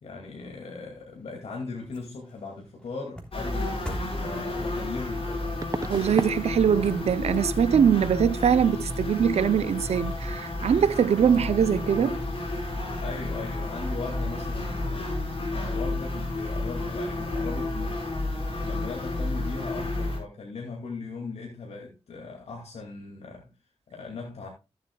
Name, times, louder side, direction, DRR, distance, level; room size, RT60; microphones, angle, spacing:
voice 1, 0.0-5.5 13.0-15.1 15.5-18.1 18.6-23.5 23.9-24.5, left 4 dB, 85° left, 2.3 m, -38 dB
sound 1, 0.9-7.4 7.8-7.9, equal, 10° left, 3.1 m, -46 dB
sound 2, 3.3-20.2, left 2 dB, 60° left, 5.1 m, -31 dB
sound 3, 5.6-6.4 6.7-7.1 7.3-7.5 10.5-10.6 10.8-11.1 11.3-11.5, right 3 dB, 35° right, 0.8 m, -35 dB
voice 2, 5.9-12.2, right 8 dB, 85° right, 0.5 m, -22 dB
14.0 x 7.9 x 2.3 m
cardioid pair, 45°, 11 cm